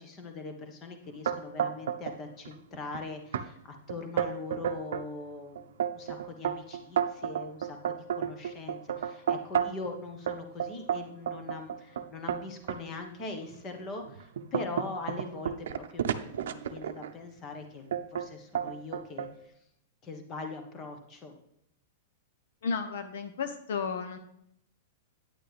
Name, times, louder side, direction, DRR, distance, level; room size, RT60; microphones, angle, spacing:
voice 1, 0.0-17.8 18.1-19.5 20.0-21.3, left 3 dB, 25° left, 4 dB, 1.4 m, -41 dB
sound 1, 1.2-2.2 2.4-3.0 3.3-3.5 3.9-5.1 5.5-9.9 10.3-12.8 13.4-13.6 14.0-17.1 17.9-18.3 18.5-19.3, right 9 dB, 75° right, 0.6 m, -31 dB
voice 2, 22.6-24.2, left 5 dB, 75° left, 8 dB, 0.9 m, -33 dB
9.5 x 8.7 x 3.4 m, 0.75 s
supercardioid pair, 155°, 0 cm